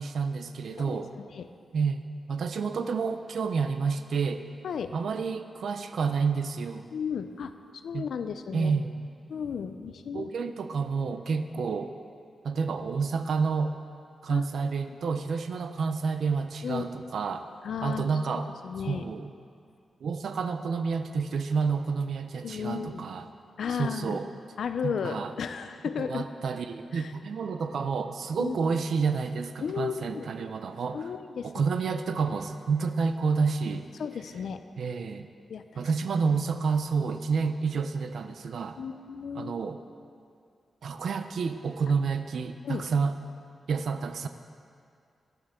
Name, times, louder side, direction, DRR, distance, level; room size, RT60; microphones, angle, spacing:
voice 1, 0.0-1.1 1.7-2.0 2.3-4.5 4.9-6.8 7.9-8.1 8.5-9.0 10.1-11.9 12.4-13.8 14.2-17.5 17.8-18.5 18.9-19.3 20.0-23.3 23.8-24.3 24.8-25.3 26.0-31.0 31.4-33.9 34.8-35.3 35.8-38.8 39.3-39.8 40.8-43.1 43.7-44.3, right 5 dB, 70° right, 9 dB, 0.5 m, -29 dB
voice 2, 0.8-1.5 4.6-5.0 6.9-8.7 9.3-10.5 14.3-14.5 14.9-15.0 16.6-16.9 17.6-19.1 22.4-23.0 23.6-24.2 24.6-26.3 26.9-27.1 28.4-28.6 29.6-30.3 30.9-31.7 34.0-34.6 35.5-35.9 38.8-39.6 42.6-42.8, left 6 dB, 75° left, 9 dB, 0.5 m, -34 dB
12.0 x 10.5 x 3.7 m, 2.3 s
wide cardioid pair, 115°, 0 cm